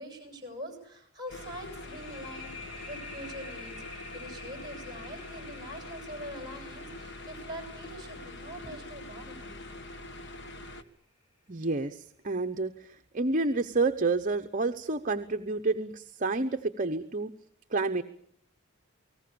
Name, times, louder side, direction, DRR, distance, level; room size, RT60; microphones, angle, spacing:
voice 1, 0.0-9.6, equal, 20° right, 5 dB, 7.8 m, -44 dB
sound 1, 1.3-10.8, left 2 dB, 55° left, 1.8 m, -44 dB
sound 2, 1.3-10.6, left 3 dB, 30° left, 5.5 m, -50 dB
voice 2, 11.5-12.9 13.1-17.3 17.7-18.0, right 3 dB, 40° right, 8 dB, 0.9 m, -29 dB
29.5 x 19.0 x 7.0 m, 0.66 s
head